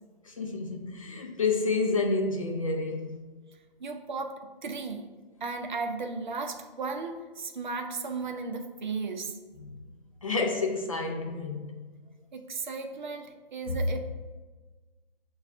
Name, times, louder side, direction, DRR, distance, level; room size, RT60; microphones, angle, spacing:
voice 1, 0.2-3.2 10.2-11.8 13.7-13.8, left 3 dB, 35° left, 0.4 m, -29 dB
voice 2, 3.8-5.1 5.4-9.4 12.3-14.1, right 4 dB, 50° right, 0.6 m, -35 dB
6.7 x 2.3 x 2.4 m
figure-of-eight pair, 145°, 29 cm